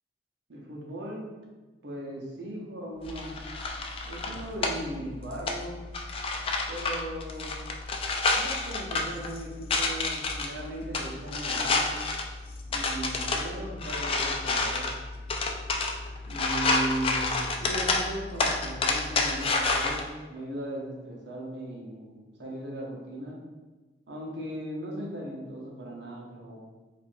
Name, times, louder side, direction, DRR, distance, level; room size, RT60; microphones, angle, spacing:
voice 1, 0.5-1.3 1.8-3.4 4.0-5.8 6.7-7.5 8.4-11.9 12.7-14.9 16.3-23.4 24.1-26.7, right 1 dB, 80° right, -2 dB, 0.8 m, -37 dB
sound 1, 3.0-20.0, left 3 dB, 30° left, 0.3 m, -30 dB
4.3 x 2.6 x 2.6 m, 1.2 s
head